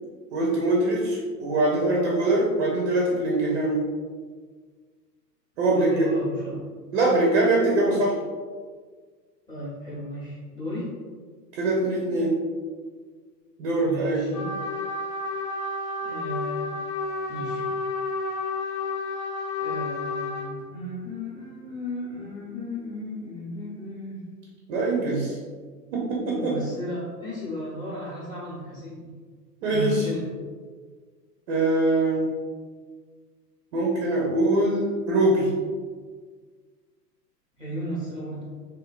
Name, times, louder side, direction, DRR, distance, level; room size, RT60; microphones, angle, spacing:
voice 1, 0.3-3.9 5.6-6.1 6.9-8.1 11.5-12.4 13.6-14.4 24.7-25.4 25.9-26.6 29.6-30.1 31.5-32.3 33.7-35.5, right 2 dB, 45° right, -3 dB, 0.6 m, -23 dB
voice 2, 5.7-6.6 9.5-11.0 13.8-14.5 16.0-16.7 17.3-17.7 19.6-24.2 26.3-29.1 29.7-30.3 37.6-38.6, left 1 dB, 10° left, -9 dB, 0.8 m, -34 dB
Trumpet, 14.3-20.5, left 3 dB, 45° left, 0.6 m, -31 dB
2.7 x 2.2 x 2.4 m, 1.6 s
figure-of-eight pair, 105°, 49 cm